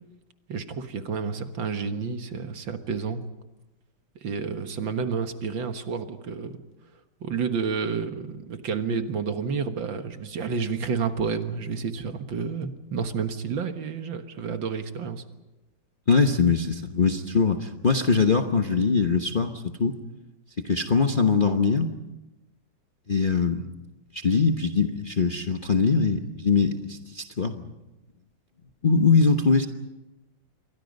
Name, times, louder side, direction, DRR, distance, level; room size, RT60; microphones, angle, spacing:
voice 1, 0.5-3.2 4.2-6.6 7.2-15.2, right 5 dB, 70° right, 7 dB, 2.2 m, -30 dB
voice 2, 16.1-19.9 20.6-21.9 23.1-23.6 24.1-27.7 28.8-29.7, left 4 dB, 35° left, 4 dB, 1.0 m, -22 dB
28.5 x 23.5 x 5.4 m, 1.0 s
omnidirectional pair, 2.2 m